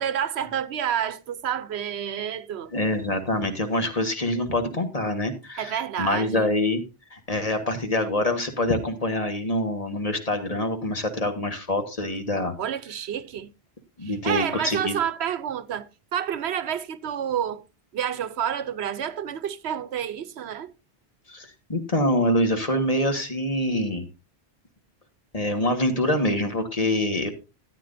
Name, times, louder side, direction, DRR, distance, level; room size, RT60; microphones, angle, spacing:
voice 1, 0.0-2.7 5.6-6.5 12.6-13.5 14.0-15.9 16.1-17.6 17.9-20.7, right 9 dB, 85° right, 1.0 m, -29 dB
voice 2, 2.7-6.8 7.1-12.5 14.0-15.0 21.3-24.1 25.3-27.3, left 1 dB, 35° left, 1.5 m, -25 dB
13.5 x 9.8 x 2.6 m
omnidirectional pair, 1.1 m